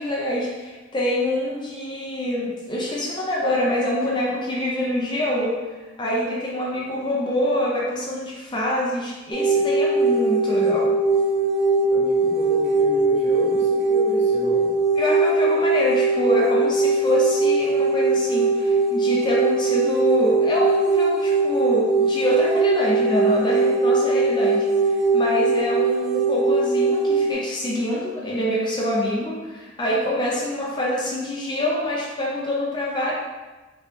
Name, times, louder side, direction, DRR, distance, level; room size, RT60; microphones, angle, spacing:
voice 1, 0.0-5.6 6.0-11.0 15.0-33.1, left 1 dB, 25° left, -3 dB, 0.4 m, -25 dB
sound 1, 9.3-27.3, right 3 dB, 5° right, 0.8 m, -20 dB
voice 2, 11.9-14.7, right 1 dB, 40° right, -7 dB, 1.1 m, -32 dB
3.1 x 3.0 x 3.0 m, 1.2 s
head